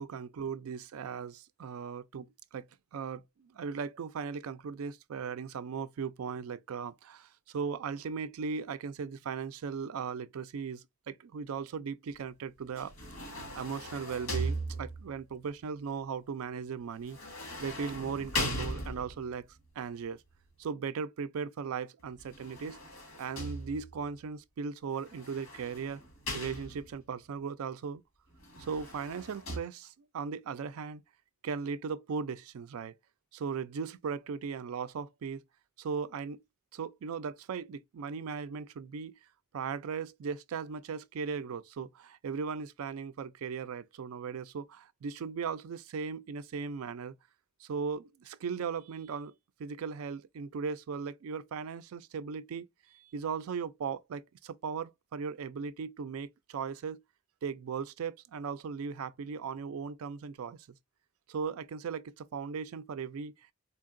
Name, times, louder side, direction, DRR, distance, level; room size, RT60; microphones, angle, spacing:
voice 1, 0.0-17.2 17.6-19.5 19.8-20.2 20.6-22.8 23.2-26.0 26.3-28.0 28.6-31.0 31.4-33.0 33.3-35.4 35.8-36.4 36.7-39.2 39.5-47.1 47.6-49.3 49.6-57.0 57.4-60.7 61.3-63.3, right 6 dB, 85° right, 0.4 m, -38 dB
sound 1, 12.8-15.2 17.1-19.3 22.2-24.1 25.1-27.0 28.4-29.6, equal, 75° left, 1.9 m, -38 dB
4.4 x 2.8 x 2.5 m
head